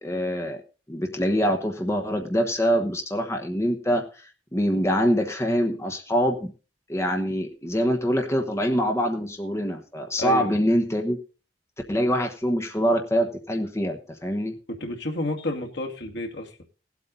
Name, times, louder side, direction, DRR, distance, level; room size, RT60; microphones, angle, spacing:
voice 1, 0.0-0.6 0.9-6.5 6.9-11.2 11.9-14.6, equal, 15° left, 3 dB, 1.2 m, -24 dB
voice 2, 10.2-10.5 14.7-16.6, left 2 dB, 75° left, 2 dB, 2.1 m, -30 dB
17.5 x 8.2 x 3.9 m, 0.34 s
head